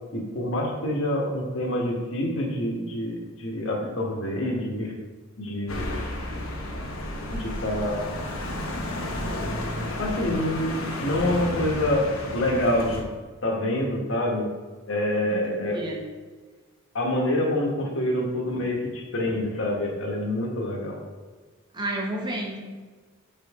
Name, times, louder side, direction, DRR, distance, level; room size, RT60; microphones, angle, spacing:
voice 1, 0.1-4.9 5.4-6.0 7.3-8.1 9.2-9.5 10.0-12.1 12.3-13.0 13.4-14.5 14.9-15.8 16.9-21.0, left 1 dB, 65° left, -2 dB, 1.4 m, -26 dB
sound 1, 5.7-13.0, left 1 dB, 90° left, 1.2 m, -32 dB
voice 2, 15.3-16.0 21.7-22.6, right 1 dB, 20° right, -1 dB, 1.0 m, -31 dB
5.4 x 5.3 x 3.6 m, 1.4 s
head